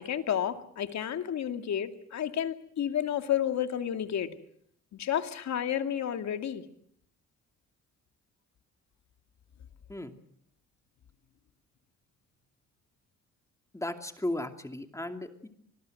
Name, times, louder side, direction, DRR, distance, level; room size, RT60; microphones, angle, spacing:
voice 1, 0.0-4.3 4.9-6.6, left 9 dB, 65° left, 8 dB, 2.3 m, -31 dB
voice 2, 13.7-15.5, left 1 dB, 10° left, 6 dB, 2.6 m, -35 dB
25.5 x 20.5 x 7.8 m, 0.67 s
cardioid pair, 90°, 30 cm